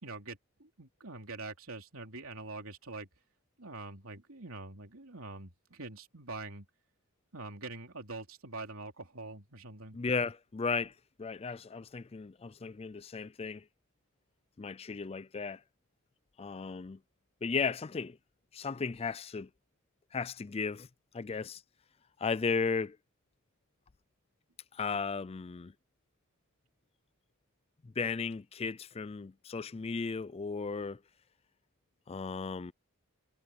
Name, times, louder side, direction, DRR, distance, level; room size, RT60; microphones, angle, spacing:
voice 1, 0.0-3.1 3.6-6.7 7.3-10.0, right 3 dB, 65° right, 3.3 m, -44 dB
voice 2, 9.9-10.9 11.2-13.6 14.6-15.6 16.4-17.0 17.4-18.2 18.5-19.5 20.1-20.9 21.1-21.6 22.2-23.0 24.7-25.7 28.0-31.0 32.1-32.7, left 5 dB, 25° left, 0.4 m, -35 dB
head